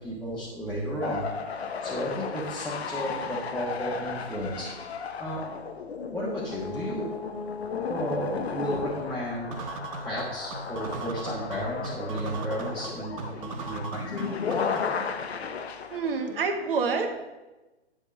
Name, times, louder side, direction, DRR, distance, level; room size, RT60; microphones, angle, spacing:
voice 1, 0.0-5.6 6.1-7.1 7.8-9.6 10.0-14.6, equal, 5° left, -10 dB, 1.4 m, -33 dB
sound 1, 1.0-16.4, left 6 dB, 70° left, 1.0 m, -34 dB
sound 2, 9.5-15.1, right 5 dB, 30° right, 0.7 m, -39 dB
voice 2, 15.9-17.2, right 4 dB, 55° right, 5 dB, 1.5 m, -27 dB
10.0 x 3.5 x 6.9 m, 1.1 s
hypercardioid pair, 140°, 33 cm